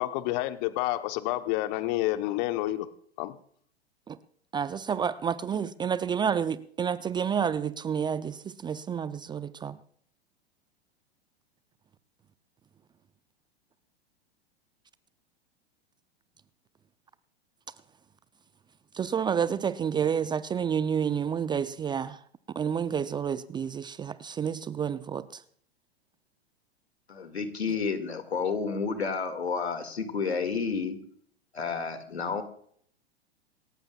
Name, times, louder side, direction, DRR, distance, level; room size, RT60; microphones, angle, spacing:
voice 1, 0.0-2.9 3.2-3.4, left 16 dB, 45° left, 1.1 m, -29 dB
voice 2, 4.5-9.8 18.9-22.2 22.6-25.4, right 7 dB, 15° right, 0.5 m, -29 dB
voice 3, 27.1-31.0 31.5-32.4, left 5 dB, 85° left, 2.3 m, -30 dB
27.5 x 14.0 x 2.4 m
figure-of-eight pair, 100°, 32 cm